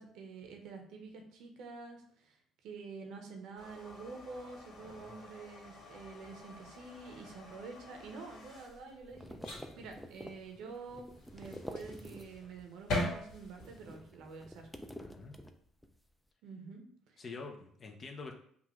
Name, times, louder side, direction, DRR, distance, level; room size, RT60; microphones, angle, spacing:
voice 1, 0.0-2.4 2.6-14.7 16.4-17.2, right 4 dB, 75° right, 3 dB, 0.8 m, -48 dB
sound 1, 3.6-14.0, left 1 dB, 70° left, 1.7 m, -44 dB
voice 2, 4.8-5.2 15.0-15.3 17.2-18.3, left 4 dB, 40° left, 3 dB, 0.8 m, -46 dB
sound 2, 8.7-12.6 12.9-16.0, equal, 5° left, 0.4 m, -49 dB
5.3 x 2.5 x 3.1 m, 0.62 s
cardioid pair, 90°, 0 cm